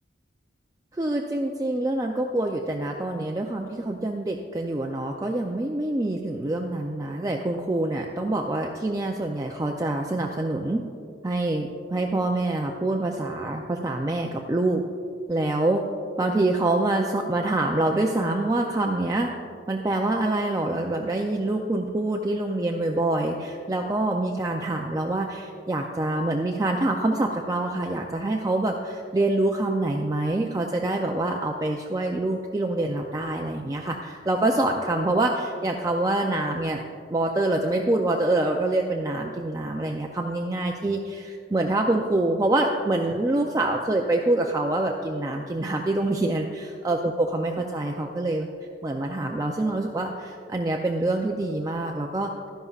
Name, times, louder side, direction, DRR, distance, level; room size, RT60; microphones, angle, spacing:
voice 1, 0.9-10.8 11.2-14.8 15.3-15.8 16.2-19.3 19.7-36.8 37.1-48.5 48.8-52.3, right 2 dB, 20° right, 1 dB, 0.4 m, -26 dB
12.5 x 10.5 x 2.4 m, 2.3 s
head